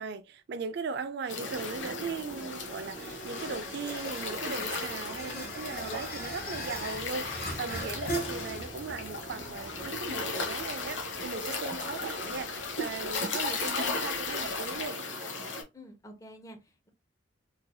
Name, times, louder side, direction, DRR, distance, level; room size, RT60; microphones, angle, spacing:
voice 1, 0.0-15.0, right 5 dB, 60° right, 0.4 m, -38 dB
sound 1, 1.3-15.6, left 3 dB, 75° left, 1.0 m, -36 dB
sound 2, 1.6-14.9, equal, 50° left, 1.5 m, -42 dB
voice 2, 5.2-5.6 15.7-16.9, left 1 dB, 15° left, 0.7 m, -49 dB
3.8 x 3.1 x 2.2 m
head